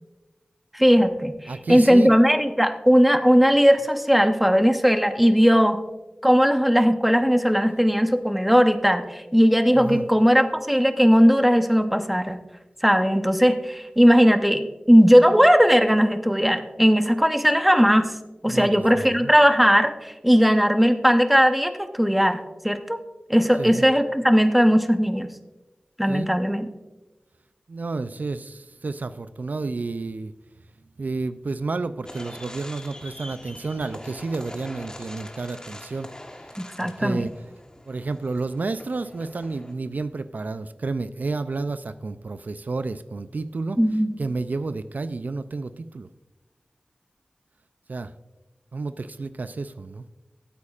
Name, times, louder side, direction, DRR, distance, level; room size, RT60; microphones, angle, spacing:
voice 1, 0.7-5.8 6.2-12.4 12.8-18.1 18.4-23.0 23.3-25.3 26.0-26.7 36.6-37.3 43.8-44.2, equal, 5° right, 8 dB, 0.8 m, -18 dB
voice 2, 1.5-2.1 9.7-10.1 18.5-19.3 23.6-23.9 26.1-26.3 27.7-30.3 31.0-36.1 36.8-37.3 37.9-43.8 44.2-46.1 47.9-48.1 48.7-50.0, right 3 dB, 70° right, 12 dB, 0.3 m, -30 dB
sound 1, 32.0-39.7, left 1 dB, 25° left, 1.2 m, -43 dB
15.0 x 8.3 x 2.4 m, 1.1 s
wide cardioid pair, 55°, 3 cm